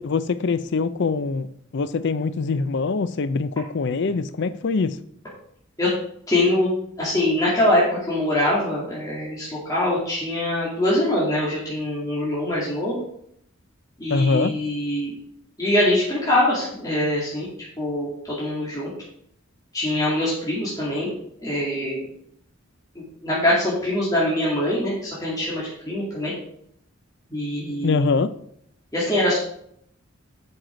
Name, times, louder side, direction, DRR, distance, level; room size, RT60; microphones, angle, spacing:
voice 1, 0.0-1.5 1.7-5.0 14.1-14.6 27.8-28.3, left 4 dB, 60° left, 0.5 m, -23 dB
voice 2, 6.3-6.7 7.0-13.0 14.0-15.1 15.6-17.5 17.8-18.9 19.7-21.1 21.4-22.0 23.0-26.3 27.3-28.1 28.9-29.4, left 1 dB, 15° left, 2.3 m, -23 dB
7.8 x 6.0 x 5.0 m
head